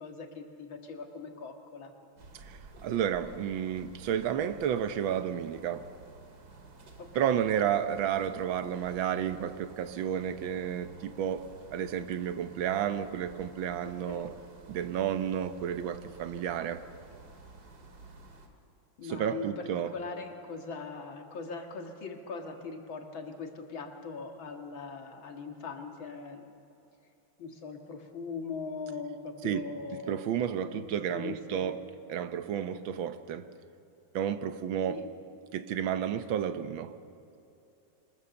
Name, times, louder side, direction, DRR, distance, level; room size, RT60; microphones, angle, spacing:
voice 1, 0.0-1.9 7.0-7.1 13.9-14.4 19.0-26.5 27.4-30.4 30.7-30.9 31.1-31.7 34.9-35.1, left 4 dB, 90° left, 2.6 m, -41 dB
sound 1, 2.2-18.5, right 3 dB, 55° right, 2.4 m, -52 dB
voice 2, 2.3-5.9 7.1-14.3 14.7-16.8 19.1-19.9 29.4-29.6 30.1-31.8 32.1-33.5 34.1-35.0 35.5-36.9, right 9 dB, 85° right, 1.7 m, -31 dB
24.5 x 20.5 x 7.1 m
omnidirectional pair, 2.1 m